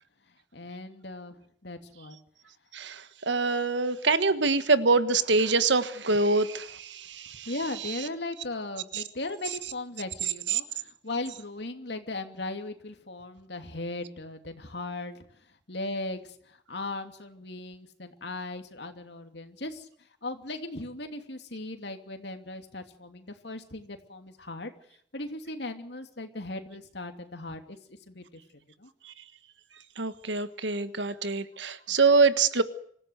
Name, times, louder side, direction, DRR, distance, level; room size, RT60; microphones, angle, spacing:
voice 1, 0.5-2.2 7.5-15.2 15.7-19.9 20.2-24.7 25.1-27.8 28.1-28.4 28.8-28.9 31.9-32.0, left 2 dB, 65° left, 6 dB, 2.8 m, -38 dB
voice 2, 2.7-7.5 7.8-8.0 8.9-9.0 10.5-10.6 29.0-29.1 30.0-32.6, right 4 dB, 80° right, 12 dB, 1.5 m, -25 dB
25.5 x 15.5 x 8.2 m, 0.65 s
head